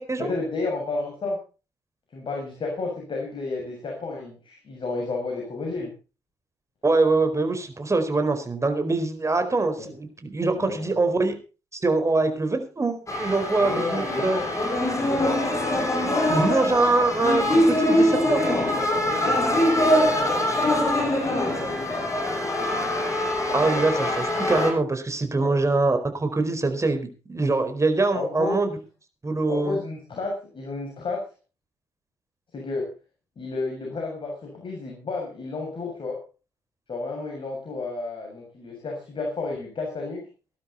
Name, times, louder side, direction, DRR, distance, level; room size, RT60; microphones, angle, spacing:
voice 1, 0.2-1.4 2.1-5.9 9.8-9.9 10.6-11.0 13.6-14.5 14.8-15.5 18.2-22.0 25.3-25.5 28.1-28.6 29.5-31.3 32.5-32.9 33.4-36.2 36.9-40.2, left 3 dB, 45° left, 0 dB, 7.1 m, -32 dB
voice 2, 6.8-11.3 11.7-14.4 16.3-18.4 23.5-28.8 29.2-29.8, right 3 dB, 25° right, 7 dB, 4.6 m, -24 dB
sound 1, 13.1-24.7, left 1 dB, 25° left, 6.6 m, -23 dB
19.0 x 12.0 x 4.1 m, 0.34 s
hypercardioid pair, 45°, 12 cm